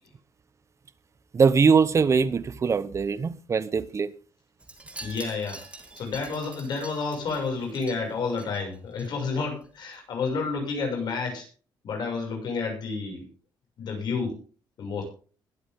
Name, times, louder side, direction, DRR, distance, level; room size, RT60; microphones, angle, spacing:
voice 1, 1.3-4.1, right 5 dB, 35° right, 1.0 m, -22 dB
Wind chime, 4.6-9.1 9.4-9.7 9.9-10.0, right 2 dB, 15° right, 3.6 m, -45 dB
voice 2, 5.0-5.6 5.9-11.5 11.8-13.3 13.8-14.4 14.8-15.0, left 4 dB, 60° left, 6.5 m, -30 dB
20.0 x 8.7 x 3.7 m
cardioid pair, 100°, 8 cm